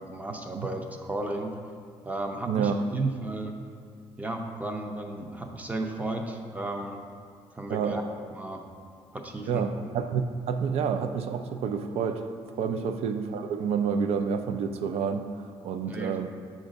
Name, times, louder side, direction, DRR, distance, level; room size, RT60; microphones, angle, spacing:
voice 1, 0.0-1.5 2.0-3.5 4.2-7.0 7.6-8.0 8.3-8.6 9.1-9.7 12.7-12.8 15.9-16.1, right 2 dB, 15° right, 3 dB, 0.6 m, -33 dB
voice 2, 7.7-8.0 9.5-10.2 10.5-12.3 12.6-16.3, right 6 dB, 80° right, 8 dB, 0.4 m, -29 dB
7.1 x 2.5 x 5.1 m, 2.4 s
cardioid pair, 105°, 11 cm